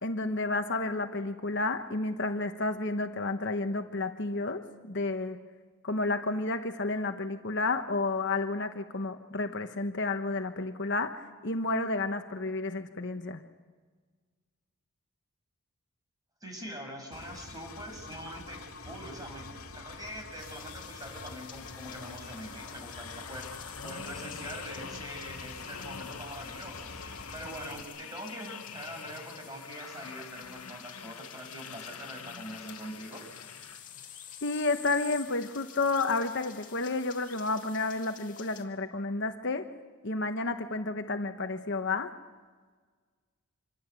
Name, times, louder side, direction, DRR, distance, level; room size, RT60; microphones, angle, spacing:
voice 1, 0.0-5.4 5.8-13.4 34.4-39.7 40.0-42.1, left 3 dB, 50° left, 6 dB, 1.2 m, -31 dB
voice 2, 16.4-33.2, equal, 15° right, 2 dB, 6.5 m, -44 dB
Engine, 17.1-27.8, left 3 dB, 70° left, 2.2 m, -46 dB
sound 1, 20.4-38.6, left 9 dB, 35° left, 2.5 m, -50 dB
sound 2, 20.6-34.2 34.7-34.9, left 6 dB, 85° left, 1.4 m, -46 dB
26.5 x 23.5 x 8.4 m, 1.5 s
head